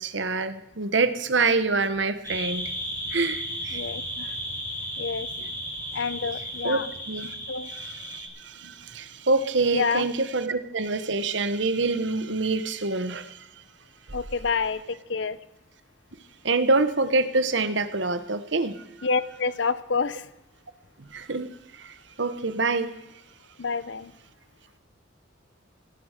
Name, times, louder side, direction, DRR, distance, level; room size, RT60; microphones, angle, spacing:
voice 1, 0.0-2.7 3.1-3.9 5.4-5.5 6.6-7.3 7.7-13.5 14.1-14.2 16.4-19.1 21.0-22.9, right 3 dB, 70° right, 11 dB, 1.2 m, -26 dB
sound 1, 2.2-8.3, equal, 15° left, 7.0 m, -34 dB
voice 2, 3.7-4.3 5.0-5.3 5.9-6.9 7.5-7.7 9.7-10.1 14.1-15.4 19.0-20.3 23.6-24.1, left 5 dB, 70° left, 16 dB, 0.7 m, -28 dB
17.5 x 11.0 x 6.6 m, 0.90 s
head